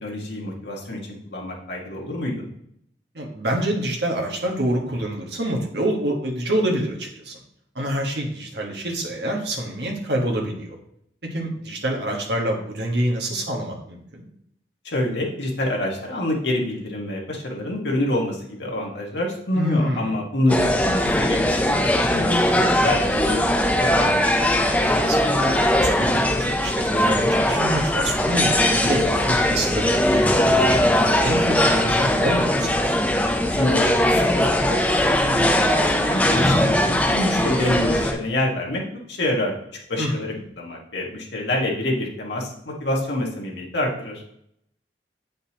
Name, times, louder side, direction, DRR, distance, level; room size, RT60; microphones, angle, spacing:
voice 1, 0.0-2.5 14.8-24.2 33.5-34.3 34.7-38.8 39.1-39.5 39.9-44.2, left 1 dB, 75° left, -1 dB, 1.6 m, -27 dB
voice 2, 3.1-7.4 7.7-10.7 11.3-14.2 19.5-20.1 24.8-25.2 25.5-33.1 40.0-40.4, right 1 dB, 70° right, 0 dB, 1.5 m, -27 dB
sound 1, 20.5-38.1, left 1 dB, 10° left, 0.6 m, -20 dB
8.0 x 5.3 x 2.9 m, 0.72 s
head